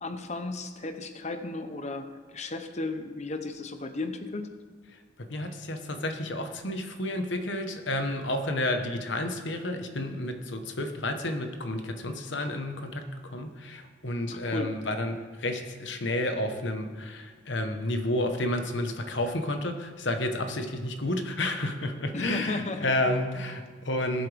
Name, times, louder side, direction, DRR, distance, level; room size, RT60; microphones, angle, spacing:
voice 1, 0.0-4.5 14.3-14.8 22.1-23.2, left 3 dB, 35° left, 8 dB, 0.8 m, -35 dB
voice 2, 5.2-24.3, left 1 dB, 65° left, 6 dB, 1.2 m, -31 dB
20.0 x 7.7 x 3.5 m, 1.5 s
head